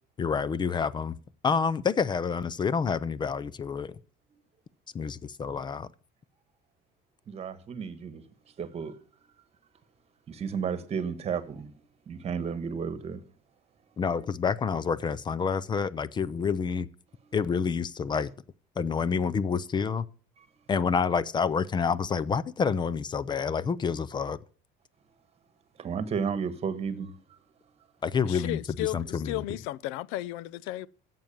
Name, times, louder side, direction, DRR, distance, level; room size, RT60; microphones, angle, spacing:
voice 1, 0.2-1.2 1.4-4.0 4.9-5.9 14.0-16.9 17.3-18.3 18.8-20.0 20.7-24.4 28.0-29.4, left 6 dB, 20° left, 0.5 m, -28 dB
voice 2, 7.3-8.2 8.6-8.9 10.3-11.7 12.1-13.2 25.8-27.1, right 6 dB, 30° right, 1.4 m, -32 dB
voice 3, 28.3-30.9, left 15 dB, 90° left, 0.6 m, -34 dB
14.0 x 7.7 x 7.1 m
cardioid pair, 150°, 20 cm